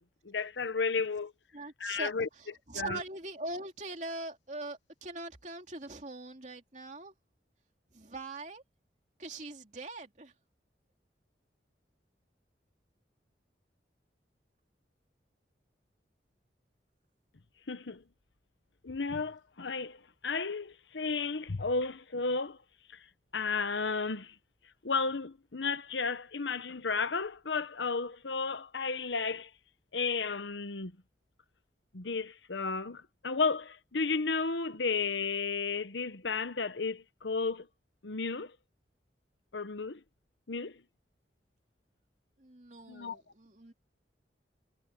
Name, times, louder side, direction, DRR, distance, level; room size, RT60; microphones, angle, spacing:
voice 1, 0.0-1.3 1.8-2.3 2.7-3.0 17.7-18.0 18.8-22.6 22.9-23.0 23.3-24.3 24.8-29.5 29.9-31.0 31.9-37.7 38.0-38.5 39.5-40.0 40.5-40.8 42.9-43.2, left 4 dB, 85° left, 1.1 m, -33 dB
voice 2, 1.5-2.1 2.4-7.1 7.9-8.6 9.2-10.3 42.4-43.7, right 2 dB, 40° right, 2.9 m, -42 dB
head